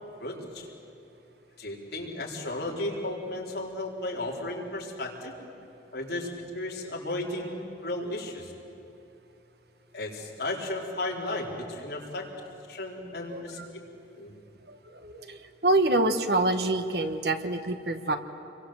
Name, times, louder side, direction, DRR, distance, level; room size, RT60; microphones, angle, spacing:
voice 1, 0.2-0.7 1.6-5.3 5.9-8.5 9.9-12.3 12.7-13.8 14.2-14.3, left 1 dB, 65° left, -2 dB, 4.5 m, -34 dB
voice 2, 15.0-15.4 15.6-18.2, right 2 dB, 60° right, 8 dB, 1.5 m, -26 dB
28.5 x 23.0 x 7.9 m, 2.9 s
head